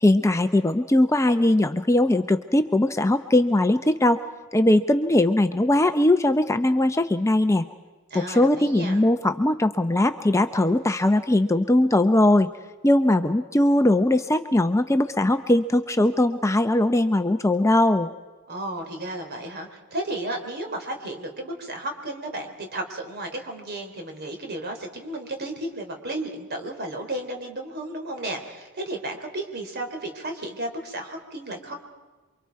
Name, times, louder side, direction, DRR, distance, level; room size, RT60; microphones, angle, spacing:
voice 1, 0.0-4.2 4.5-7.6 8.1-12.5 12.8-18.1, left 1 dB, 15° left, 9 dB, 0.6 m, -20 dB
voice 2, 8.1-9.0 18.5-31.7, right 1 dB, 50° right, 4 dB, 3.6 m, -33 dB
28.0 x 24.5 x 4.7 m, 1.3 s
head